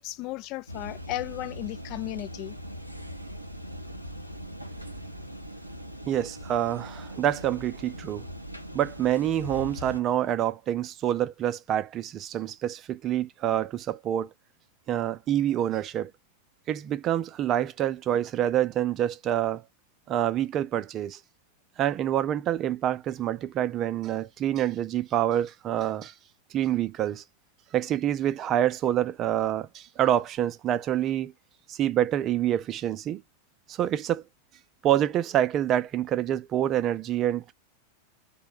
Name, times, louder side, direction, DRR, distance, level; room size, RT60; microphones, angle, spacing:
voice 1, 0.0-2.6, left 17 dB, 40° left, 0.4 m, -35 dB
sound 1, 0.7-10.0, equal, 90° right, 0.5 m, -40 dB
voice 2, 6.0-8.3 8.7-14.3 14.9-16.1 16.7-19.6 20.1-21.2 21.8-26.1 26.5-27.2 27.7-31.3 31.7-33.2 33.7-34.2 34.8-37.5, right 11 dB, 30° right, 0.4 m, -27 dB
3.4 x 2.1 x 2.8 m
figure-of-eight pair, 90°, 0 cm